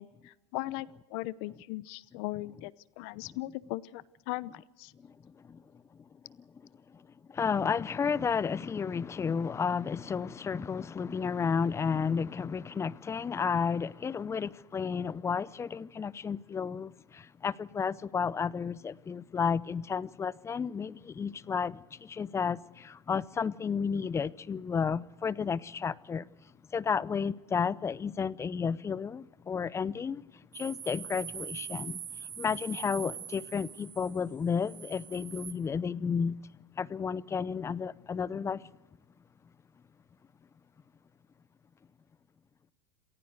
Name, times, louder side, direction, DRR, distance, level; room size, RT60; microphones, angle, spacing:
voice 1, 0.0-4.9, left 19 dB, 60° left, 0.8 m, -39 dB
voice 2, 7.3-26.3 26.7-30.2 30.5-32.0 32.4-36.3 36.8-38.6, left 6 dB, 20° left, 0.6 m, -32 dB
sound 1, 30.5-35.5, right 8 dB, 30° right, 1.6 m, -43 dB
27.5 x 15.0 x 8.0 m
supercardioid pair, 115°, 15 cm